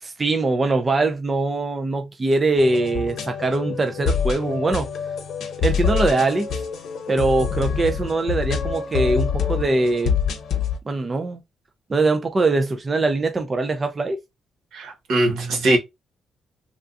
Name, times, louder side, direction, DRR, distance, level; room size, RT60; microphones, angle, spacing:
voice 1, 0.0-4.9 5.6-6.5 7.1-10.1 10.9-11.4 11.9-14.2, right 2 dB, 25° right, 0.4 m, -22 dB
sound 1, 2.6-10.8, left 6 dB, 65° left, 0.9 m, -26 dB
voice 2, 14.7-15.8, right 1 dB, 75° right, 1.2 m, -21 dB
3.5 x 2.3 x 2.4 m
cardioid pair, 145°, 0 cm